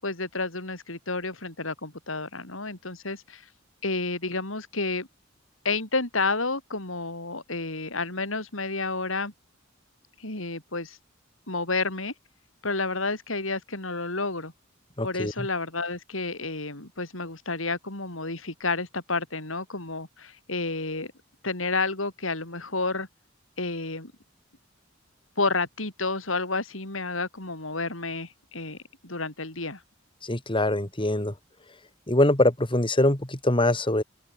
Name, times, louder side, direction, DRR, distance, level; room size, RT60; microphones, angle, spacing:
voice 1, 0.0-3.4 3.8-5.1 5.6-9.3 10.2-11.0 11.5-12.1 12.6-14.5 15.0-21.1 21.4-23.1 23.6-24.1 25.4-28.8 29.0-29.8, left 3 dB, 85° left, 6.3 m, -30 dB
voice 2, 15.0-15.3 30.2-31.3 32.1-34.0, left 1 dB, 25° left, 3.3 m, -23 dB
open air
head